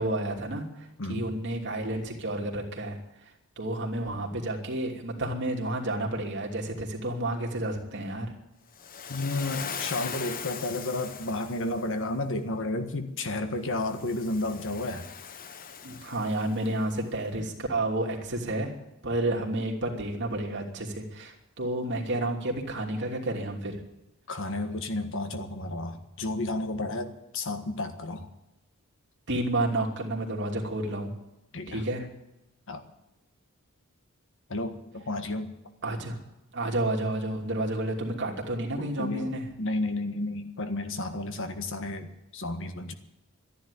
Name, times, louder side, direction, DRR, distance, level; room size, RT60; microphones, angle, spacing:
voice 1, 0.0-3.3 3.6-8.3 15.8-18.7 19.0-23.8 29.3-31.1 31.7-32.1 35.8-36.2 36.5-39.5, right 1 dB, 55° right, 1 dB, 2.9 m, -30 dB
Waves surf, 8.7-11.9 13.7-16.8, left 7 dB, 40° left, 0.9 m, -40 dB
voice 2, 9.1-15.1 24.3-28.3 31.5-31.8 32.7-32.8 34.5-35.5 38.8-39.3 39.6-42.9, left 2 dB, 65° left, 8 dB, 1.6 m, -32 dB
13.0 x 10.5 x 9.9 m, 0.93 s
head